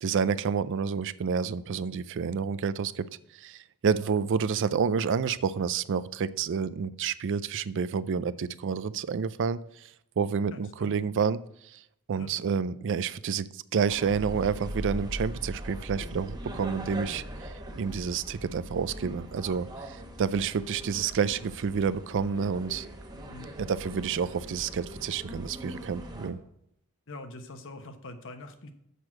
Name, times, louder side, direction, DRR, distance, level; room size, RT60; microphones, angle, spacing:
voice 1, 0.0-3.1 3.3-9.9 10.2-11.8 12.1-22.9 23.6-26.4, right 6 dB, 55° right, 16 dB, 0.4 m, -29 dB
voice 2, 10.5-11.0 12.1-12.3 23.3-23.5 27.1-28.7, left 2 dB, 60° left, 7 dB, 1.1 m, -44 dB
sound 1, 13.9-26.3, right 1 dB, 20° right, 1.1 m, -40 dB
6.8 x 6.1 x 7.3 m, 0.76 s
head